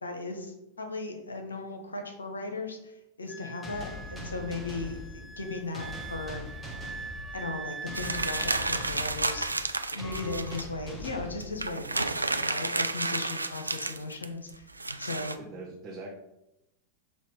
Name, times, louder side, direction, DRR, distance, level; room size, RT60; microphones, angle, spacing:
voice 1, 0.0-6.4 7.3-9.5 9.8-14.7 15.0-15.4, left 3 dB, 75° left, 4 dB, 0.9 m, -37 dB
Wind instrument woodwind instrument, 3.3-9.7 10.0-10.6, right 4 dB, 10° right, 0.4 m, -44 dB
sound 1, 3.6-12.1, left 1 dB, 10° left, 1.1 m, -42 dB
sound 2, 7.9-10.7 11.1-11.2 11.4-15.3, right 2 dB, 80° right, 0.3 m, -31 dB
voice 2, 15.4-16.1, right 2 dB, 30° right, -2 dB, 1.0 m, -42 dB
6.8 x 2.9 x 4.9 m, 0.90 s
figure-of-eight pair, 90°, 0 cm